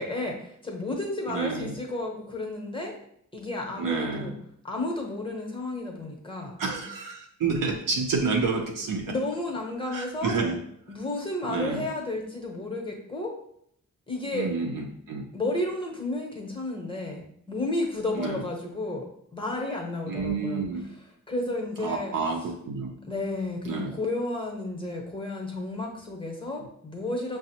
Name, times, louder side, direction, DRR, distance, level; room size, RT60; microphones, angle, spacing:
voice 1, 0.0-2.9 3.3-4.3 4.6-6.5 9.1-10.4 10.9-13.3 14.1-14.5 15.3-19.0 19.3-20.6 21.3-22.1 23.1-27.4, left 2 dB, 15° left, 0 dB, 0.8 m, -32 dB
voice 2, 1.3-1.8 3.8-4.4 6.6-9.1 9.9-10.6 11.5-11.9 14.3-15.3 18.2-18.4 20.1-20.8 21.8-22.9 23.6-24.0 26.6-26.7, right 4 dB, 90° right, 1 dB, 0.5 m, -29 dB
5.7 x 2.0 x 2.8 m, 0.69 s
wide cardioid pair, 105°, 32 cm